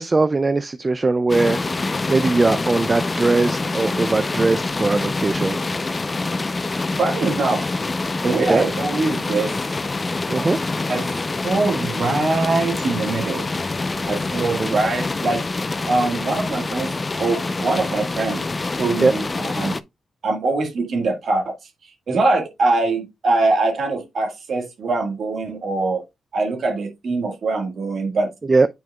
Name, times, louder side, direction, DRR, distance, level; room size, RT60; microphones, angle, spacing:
voice 1, 0.0-1.6 2.1-5.6 8.4-8.6 10.3-10.6 14.4-14.8 19.0-19.1 28.5-28.7, right 3 dB, 30° right, 0.4 m, -20 dB
sound 1, 1.3-19.8, left 3 dB, 30° left, 0.5 m, -26 dB
voice 2, 7.0-7.8 8.2-9.5 10.9-13.4 14.1-15.4 15.9-18.5 18.7-19.8 20.2-21.5 21.8-26.0 26.3-28.3, right 3 dB, 65° right, 1.7 m, -23 dB
9.3 x 4.6 x 2.3 m
cardioid pair, 80°, 0 cm